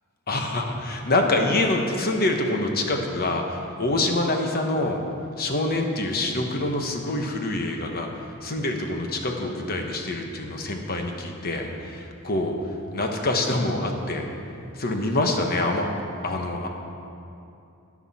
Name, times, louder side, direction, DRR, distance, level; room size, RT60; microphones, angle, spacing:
voice 1, 0.3-5.0 5.4-8.1 8.4-12.6 12.9-14.3 14.8-15.9 16.2-16.7, left 2 dB, 45° left, 3 dB, 1.1 m, -25 dB
13.5 x 9.6 x 4.2 m, 2.7 s
head